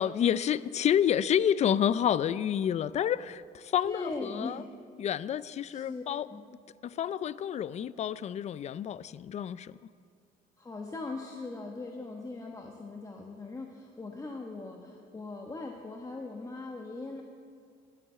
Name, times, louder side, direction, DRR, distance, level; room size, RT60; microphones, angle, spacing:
voice 1, 0.0-4.6 5.0-6.3 6.8-9.8, left 9 dB, 40° left, 18 dB, 0.4 m, -29 dB
voice 2, 3.8-4.7 5.7-6.4 10.6-17.2, left 3 dB, 20° left, 1 dB, 1.1 m, -40 dB
12.0 x 11.5 x 7.5 m, 2.3 s
cardioid pair, 110°, 17 cm